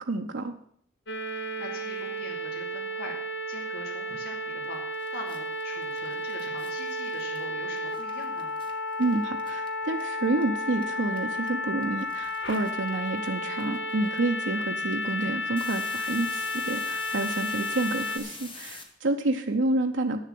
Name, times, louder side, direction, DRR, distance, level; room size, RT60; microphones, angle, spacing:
voice 1, 0.1-0.5 9.0-20.2, right 2 dB, 80° right, 3 dB, 0.8 m, -29 dB
sound 1, 1.1-18.2, left 1 dB, 70° left, 1.1 m, -32 dB
voice 2, 1.3-8.5 15.2-15.4, left 1 dB, 55° left, -3 dB, 2.9 m, -43 dB
sound 2, 4.6-4.7 4.9-10.4 10.7-18.8, left 4 dB, 25° left, 1.4 m, -46 dB
9.3 x 7.2 x 7.6 m, 0.62 s
head